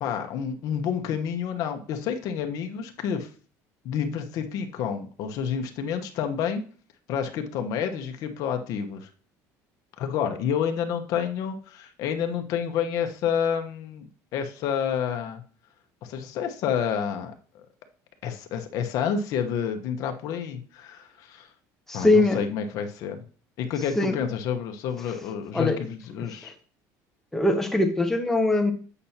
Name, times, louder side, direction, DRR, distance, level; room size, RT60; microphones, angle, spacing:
voice 1, 0.0-3.3 3.8-6.6 7.1-9.1 10.0-15.4 16.0-17.3 18.2-21.5 21.9-23.2 23.6-26.5, left 7 dB, 55° left, 6 dB, 1.0 m, -29 dB
voice 2, 21.9-22.4 24.0-24.2 25.5-25.8 27.3-28.7, left 2 dB, 5° left, 4 dB, 0.9 m, -21 dB
8.4 x 5.8 x 2.8 m, 0.41 s
cardioid pair, 160°, 7 cm